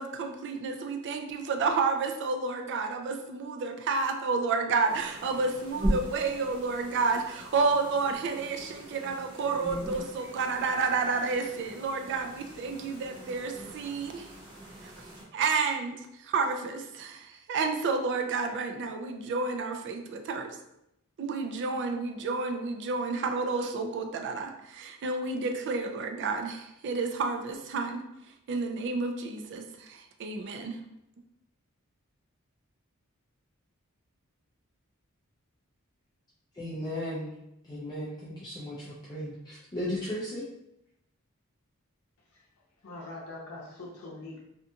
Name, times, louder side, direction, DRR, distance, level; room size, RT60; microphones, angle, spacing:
voice 1, 0.0-14.3 14.8-14.9 15.3-20.6 21.2-28.0 28.5-30.8, right 4 dB, 55° right, 5 dB, 0.3 m, -30 dB
sound 1, 4.9-15.2, equal, 20° right, 0.8 m, -39 dB
voice 2, 36.5-37.3 37.6-40.4, left 1 dB, 20° left, -7 dB, 0.4 m, -36 dB
voice 3, 42.8-44.4, left 2 dB, 80° left, -3 dB, 0.7 m, -43 dB
2.5 x 2.2 x 2.7 m, 0.83 s
head